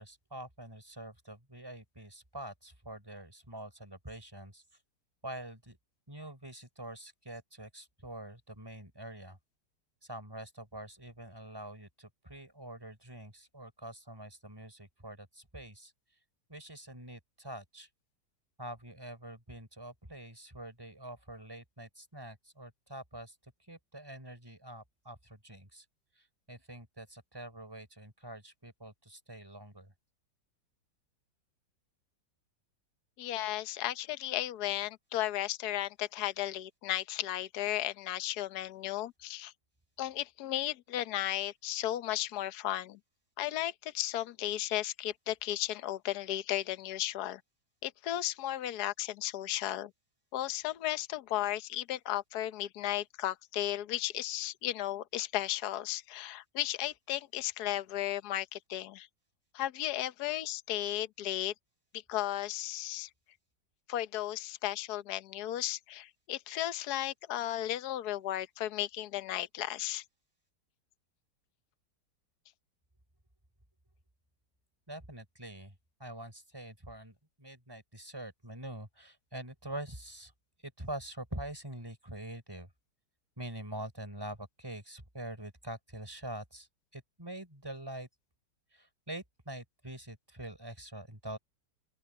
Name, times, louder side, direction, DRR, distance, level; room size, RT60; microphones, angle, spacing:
voice 1, 0.0-4.6 5.2-5.8 6.1-9.4 10.0-15.9 16.5-17.9 18.6-25.8 26.2-29.9 74.9-80.3 80.6-82.7 83.4-86.7 86.9-88.1 88.7-91.4, right 1 dB, 15° right, 4.7 m, -45 dB
voice 2, 33.2-39.5 40.0-43.0 43.4-47.4 47.8-49.9 50.3-59.1 59.5-61.5 62.1-63.1 63.9-70.0, left 13 dB, 65° left, 1.3 m, -35 dB
open air
omnidirectional pair, 1.9 m